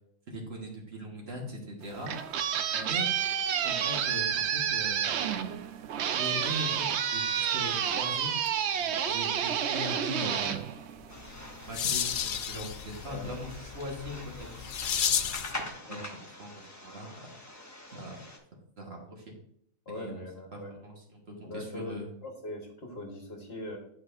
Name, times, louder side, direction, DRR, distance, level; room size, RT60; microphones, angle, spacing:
voice 1, 0.3-2.1 2.8-3.1 3.6-5.1 6.1-6.9 7.1-8.3 9.1-10.6 11.7-15.1 15.8-17.4 17.9-18.2 18.8-19.3 19.9-20.2 20.5-22.1, equal, 50° right, -1 dB, 1.6 m, -40 dB
sound 1, 1.8-11.5, right 8 dB, 65° right, 0.7 m, -30 dB
sound 2, 11.1-18.4, left 1 dB, 15° left, 0.8 m, -45 dB
sound 3, 11.2-15.6, left 8 dB, 75° left, 0.4 m, -32 dB
voice 2, 13.0-13.3 15.8-16.1 19.8-20.7 21.4-23.8, left 1 dB, 50° left, 2 dB, 1.5 m, -41 dB
10.5 x 4.8 x 2.6 m, 0.70 s
omnidirectional pair, 1.4 m